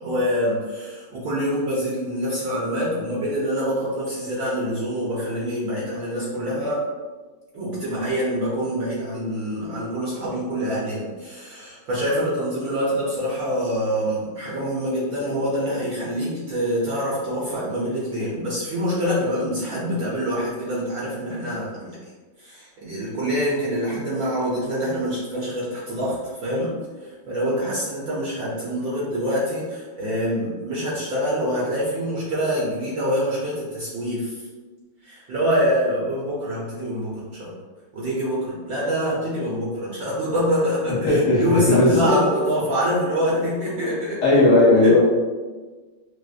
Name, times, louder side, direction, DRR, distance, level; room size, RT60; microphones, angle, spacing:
voice 1, 0.0-6.8 7.5-22.0 22.4-26.7 27.0-34.4 35.0-37.5 37.9-44.4 44.8-44.9, equal, 60° right, -7 dB, 1.1 m, -25 dB
voice 2, 41.0-42.2 44.2-45.0, left 2 dB, 60° left, -7 dB, 1.5 m, -16 dB
4.9 x 2.0 x 2.4 m, 1.3 s
omnidirectional pair, 2.2 m